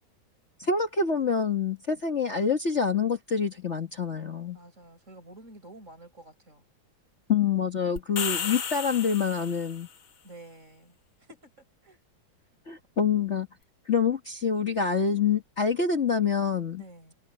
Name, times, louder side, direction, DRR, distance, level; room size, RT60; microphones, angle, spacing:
voice 1, 0.6-4.6 7.3-9.9 12.7-13.5 13.9-16.8, left 6 dB, 35° left, 1.7 m, -26 dB
voice 2, 4.5-6.6 10.2-11.0 11.3-11.5 11.8-12.0 16.8-17.1, right 2 dB, 35° right, 5.9 m, -49 dB
sound 1, 8.0-9.9, left 7 dB, 80° left, 2.4 m, -33 dB
omnidirectional pair, 2.2 m